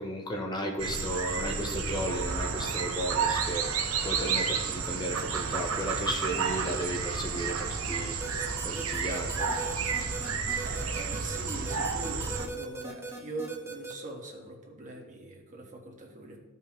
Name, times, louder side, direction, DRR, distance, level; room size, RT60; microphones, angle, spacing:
voice 1, 0.0-3.7 4.0-9.4, equal, 20° left, 2 dB, 0.8 m, -34 dB
sound 1, 0.8-12.5, right 5 dB, 80° right, 0.9 m, -31 dB
sound 2, 8.2-13.9, right 2 dB, 10° right, 1.3 m, -39 dB
voice 2, 10.6-16.4, right 2 dB, 35° right, 0 dB, 1.5 m, -42 dB
14.5 x 5.4 x 3.1 m, 1.2 s
head